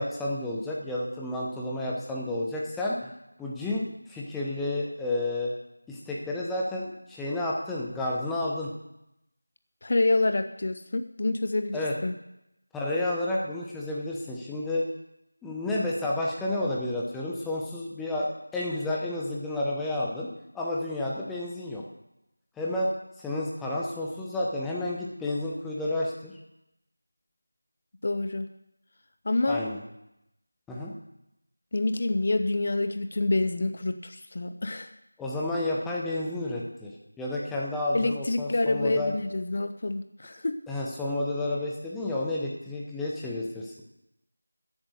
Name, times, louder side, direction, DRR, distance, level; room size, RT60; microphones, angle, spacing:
voice 1, 0.0-3.0 3.4-5.5 5.9-8.7 11.7-11.9 12.7-14.9 15.4-21.8 22.6-22.9 23.2-26.4 29.5-29.8 30.7-30.9 35.2-39.1 40.7-43.8, left 1 dB, 5° left, -4 dB, 0.8 m, -31 dB
voice 2, 9.8-12.1 28.0-28.5 29.3-29.6 31.7-34.9 37.9-40.6, left 2 dB, 40° left, 10 dB, 0.6 m, -27 dB
13.0 x 8.1 x 6.5 m, 0.86 s
figure-of-eight pair, 175°, 0 cm